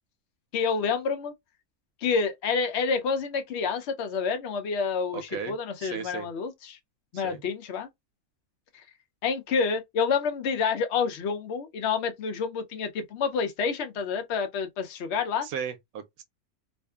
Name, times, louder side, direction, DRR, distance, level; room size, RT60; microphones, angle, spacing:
voice 1, 0.5-1.3 2.0-6.8 7.1-7.9 8.7-8.8 9.2-15.5, left 5 dB, 60° left, 0.8 m, -28 dB
voice 2, 5.1-6.3 7.1-7.4 15.4-16.2, right 7 dB, 70° right, 0.9 m, -36 dB
2.6 x 2.4 x 2.3 m
omnidirectional pair, 1.6 m